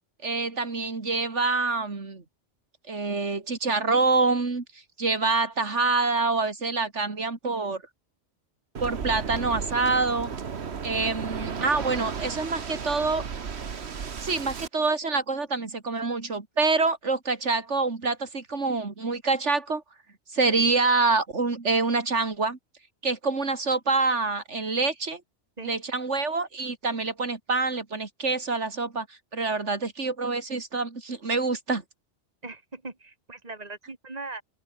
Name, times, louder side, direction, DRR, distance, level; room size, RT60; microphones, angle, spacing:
voice 1, 0.2-2.2 2.9-4.6 5.0-7.8 8.8-10.4 10.8-13.3 14.2-19.8 20.3-22.6 23.0-25.2 25.6-31.8, right 3 dB, 80° right, 2.9 m, -26 dB
Waves surf, 8.7-14.7, right 6 dB, 65° right, 1.6 m, -34 dB
voice 2, 32.4-34.4, right 3 dB, 35° right, 2.9 m, -40 dB
open air
omnidirectional pair, 1.2 m